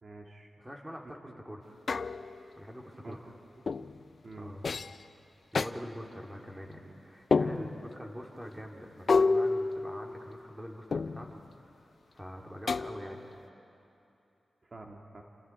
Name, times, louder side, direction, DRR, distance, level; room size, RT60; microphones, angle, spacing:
voice 1, 0.0-0.5 1.3-1.4 3.0-3.3 3.8-3.9 4.2-4.6 7.3-7.7 14.6-15.2, right 2 dB, 45° right, 0 dB, 1.9 m, -48 dB
voice 2, 0.6-1.7 2.6-3.2 4.4-4.7 5.5-11.8 12.1-13.3, equal, 10° right, 0 dB, 3.3 m, -44 dB
sound 1, 1.9-2.5 3.7-4.0 4.6-5.0 5.5-5.7 7.3-7.9 9.1-10.4 10.9-11.4 12.7-13.3, left 4 dB, 60° left, 0.5 m, -29 dB
28.5 x 27.0 x 4.9 m, 2.8 s
cardioid pair, 65°, 0 cm